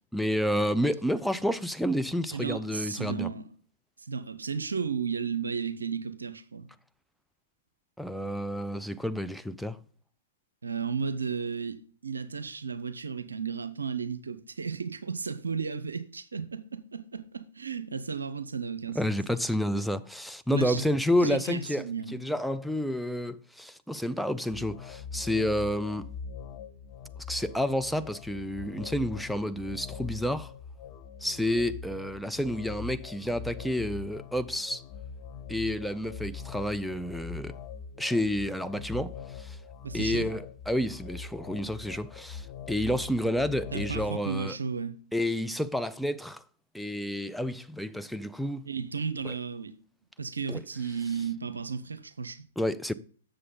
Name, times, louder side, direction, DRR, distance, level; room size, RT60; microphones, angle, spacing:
voice 1, 0.1-3.3 8.0-9.8 19.0-21.9 22.1-26.1 27.3-30.5 31.2-34.8 35.5-37.6 38.0-39.6 39.9-44.6 45.1-46.4 46.7-48.7 49.2-49.3 50.5-50.6 52.6-52.9, equal, ahead, 0.4 m, -30 dB
voice 2, 2.3-3.5 4.0-6.7 10.6-19.2 20.5-20.9 21.2-22.2 39.8-40.3 43.7-45.0 48.7-49.8 50.2-52.4, right 6 dB, 80° right, 0.7 m, -34 dB
sound 1, 24.5-44.1, left 5 dB, 40° left, 0.8 m, -42 dB
7.6 x 6.6 x 3.8 m
figure-of-eight pair, 110°, 0 cm